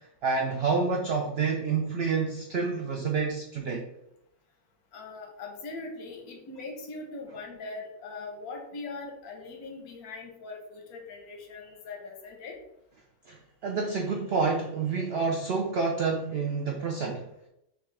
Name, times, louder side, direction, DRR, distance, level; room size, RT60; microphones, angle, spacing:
voice 1, 0.0-3.9 13.3-13.4 13.6-17.3, right 4 dB, 65° right, 1 dB, 0.6 m, -28 dB
voice 2, 4.9-12.5, left 3 dB, 90° left, 2 dB, 1.3 m, -41 dB
6.1 x 2.3 x 3.2 m, 0.81 s
omnidirectional pair, 1.6 m